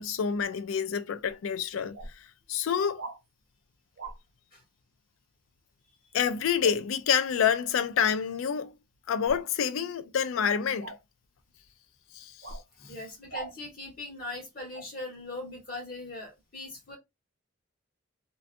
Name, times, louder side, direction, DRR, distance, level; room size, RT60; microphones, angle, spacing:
voice 1, 0.0-2.0 2.5-3.0 6.1-8.7 9.1-10.9 12.2-12.3, left 7 dB, 85° left, 0.4 m, -27 dB
sound 1, 1.3-1.4 1.9-2.1 3.0-3.2 4.0-4.2 6.6-6.8 9.2-9.5 10.8-11.0 12.4-12.6 13.3-13.5 14.7-14.9, right 3 dB, 70° right, 0.5 m, -40 dB
voice 2, 12.8-17.0, left 2 dB, 45° left, 1.2 m, -40 dB
2.5 x 2.3 x 2.5 m
head